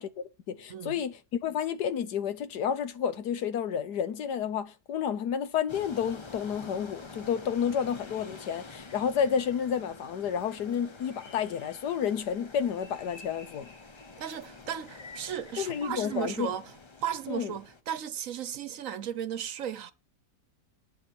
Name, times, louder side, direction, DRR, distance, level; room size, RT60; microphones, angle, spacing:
voice 1, 0.0-13.7 15.6-16.5 17.3-17.5, left 8 dB, 85° left, 1.6 m, -30 dB
voice 2, 0.7-1.0 14.2-16.6 17.0-19.9, right 9 dB, 60° right, 1.1 m, -35 dB
sound 1, 5.7-17.8, left 3 dB, 35° left, 0.4 m, -48 dB
sound 2, 7.8-9.9 10.3-12.2 12.6-16.8, left 3 dB, 55° left, 2.2 m, -55 dB
11.0 x 6.4 x 7.0 m
omnidirectional pair, 1.7 m